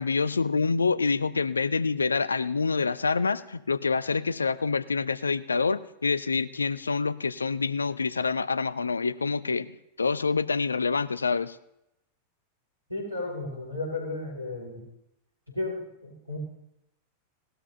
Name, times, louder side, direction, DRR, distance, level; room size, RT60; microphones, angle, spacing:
voice 1, 0.0-11.6, left 4 dB, 75° left, 17 dB, 0.4 m, -27 dB
voice 2, 12.9-14.8 15.5-16.4, left 2 dB, 85° right, -1 dB, 5.1 m, -34 dB
18.5 x 12.5 x 2.7 m, 0.83 s
figure-of-eight pair, 90°, 0 cm